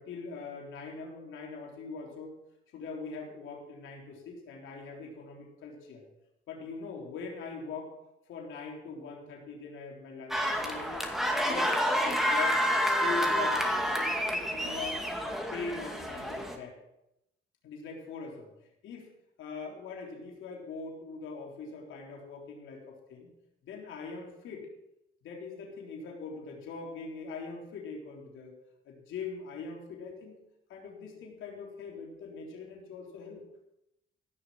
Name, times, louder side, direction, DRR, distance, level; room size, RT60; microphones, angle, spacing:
voice 1, 0.0-2.3 2.7-6.0 6.5-7.9 8.3-11.1 11.4-12.6 13.0-16.8 17.6-18.5 18.8-19.0 19.4-23.3 23.6-24.7 25.2-28.6 28.9-30.4 30.7-33.5, left 4 dB, 80° left, 0 dB, 3.7 m, -42 dB
sound 1, 10.3-16.6, equal, ahead, 2.3 m, -29 dB
16.0 x 6.5 x 7.6 m, 0.86 s
cardioid pair, 90°, 20 cm